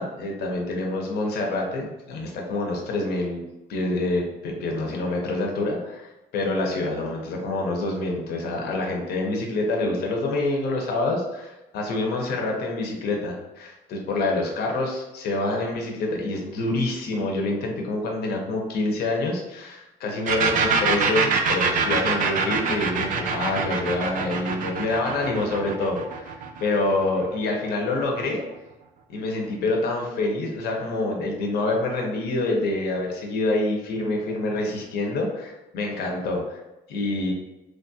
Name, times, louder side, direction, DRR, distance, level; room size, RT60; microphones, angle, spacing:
voice 1, 0.0-3.4 3.7-28.4 29.1-36.6 36.9-37.3, left 2 dB, 70° left, 0 dB, 0.7 m, -26 dB
sound 1, 20.3-27.8, right 5 dB, 50° right, 0.4 m, -25 dB
3.1 x 2.3 x 2.7 m, 0.99 s
cardioid pair, 110°, 17 cm